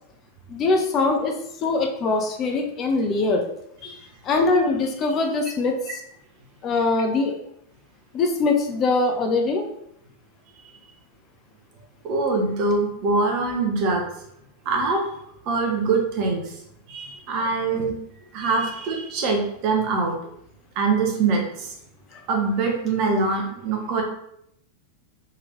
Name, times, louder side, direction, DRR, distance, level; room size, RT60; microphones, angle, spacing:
voice 1, 0.5-3.5 3.8-4.0 4.2-5.8 6.6-7.4 8.1-9.6 22.1-22.2, left 3 dB, 30° left, 3 dB, 0.5 m, -22 dB
voice 2, 12.0-14.0 14.6-15.0 15.4-16.5 16.9-17.9 18.3-20.2 20.7-21.7 22.3-24.0, right 3 dB, 45° right, 1 dB, 0.9 m, -23 dB
3.7 x 2.9 x 3.0 m, 0.75 s
figure-of-eight pair, 90°, 0 cm